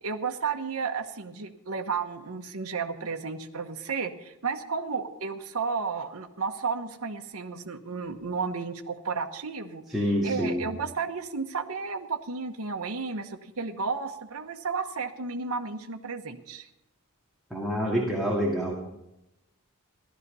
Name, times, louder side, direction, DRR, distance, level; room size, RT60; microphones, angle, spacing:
voice 1, 0.0-9.8 10.2-16.7, right 5 dB, 70° right, 4 dB, 1.1 m, -33 dB
voice 2, 9.9-10.6 17.5-18.7, equal, ahead, -5 dB, 1.9 m, -27 dB
15.0 x 12.0 x 5.5 m, 0.88 s
head